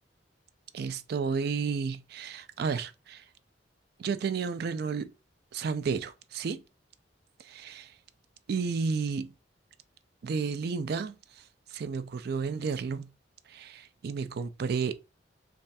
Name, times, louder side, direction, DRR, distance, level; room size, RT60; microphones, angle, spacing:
voice 1, 0.7-3.2 4.0-5.1 5.5-6.6 7.4-7.9 8.5-9.3 10.2-11.1 11.7-13.1 13.5-15.0, right 5 dB, 60° right, 0.4 m, -32 dB
3.3 x 2.4 x 4.0 m
head